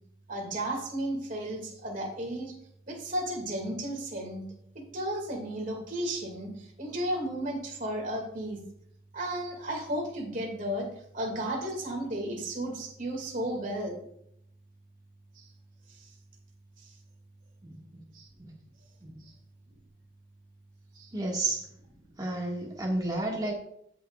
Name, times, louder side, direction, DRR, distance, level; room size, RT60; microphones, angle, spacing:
voice 1, 0.3-2.5 2.9-4.4 4.9-8.6 9.1-10.9 11.1-14.0 15.4-15.5 15.9-16.1 16.8-16.9 18.1-18.3 20.9-21.1, right 1 dB, 40° right, 0 dB, 2.3 m, -34 dB
voice 2, 17.6-18.0 18.4-18.5 19.0-19.1 21.1-21.7 22.2-23.5, right 2 dB, 20° right, -2 dB, 1.8 m, -32 dB
16.0 x 5.6 x 2.4 m, 0.72 s
head